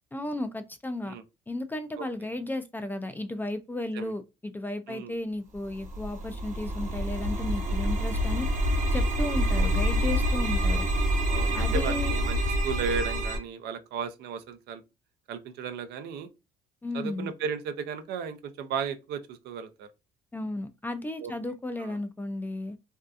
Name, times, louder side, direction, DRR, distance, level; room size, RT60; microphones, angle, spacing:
voice 1, 0.1-1.1 1.5-8.5 8.9-10.9 11.5-12.1 16.8-17.3 20.3-22.8, left 1 dB, 10° left, 0.3 m, -34 dB
sound 1, 5.6-13.4, equal, 50° right, 0.8 m, -27 dB
voice 2, 9.5-9.9 11.3-12.4 12.6-14.8 15.3-16.3 16.9-19.9 21.2-21.3 21.8-22.0, right 6 dB, 75° right, 0.5 m, -35 dB
2.6 x 2.3 x 2.3 m
cardioid pair, 110°, 17 cm